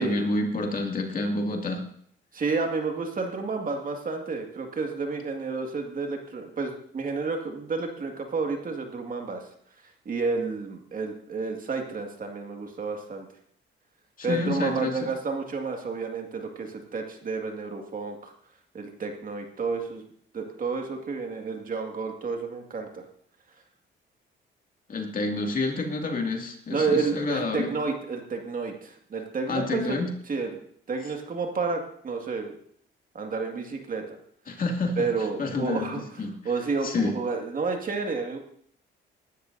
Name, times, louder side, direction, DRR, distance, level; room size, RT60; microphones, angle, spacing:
voice 1, 0.0-1.8 14.2-15.1 24.9-27.7 29.5-30.1 34.5-36.5 36.8-37.2, left 2 dB, 45° left, 1 dB, 2.4 m, -29 dB
voice 2, 2.3-9.4 10.1-13.3 14.2-18.3 18.7-20.0 20.3-23.0 26.7-30.0 30.3-30.5 30.9-32.5 33.1-34.2 35.0-36.0 36.4-38.4, right 4 dB, 45° right, 3 dB, 2.1 m, -30 dB
19.5 x 12.5 x 2.7 m, 0.63 s
cardioid pair, 90°, 20 cm